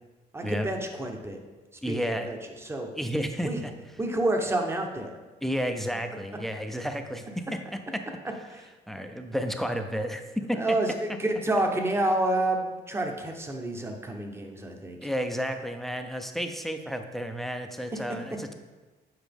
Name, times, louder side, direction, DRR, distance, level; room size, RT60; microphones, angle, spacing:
voice 1, 0.3-1.4 1.9-2.9 3.4-3.6 4.0-5.1 8.5-8.7 10.5-15.0 17.9-18.0, right 1 dB, 15° right, 4 dB, 0.9 m, -29 dB
voice 2, 1.8-2.3 3.0-3.7 5.4-7.4 8.9-10.2 10.5-10.8 15.0-18.5, equal, ahead, 6 dB, 0.5 m, -31 dB
8.1 x 4.7 x 3.5 m, 1.2 s
cardioid pair, 110°, 17 cm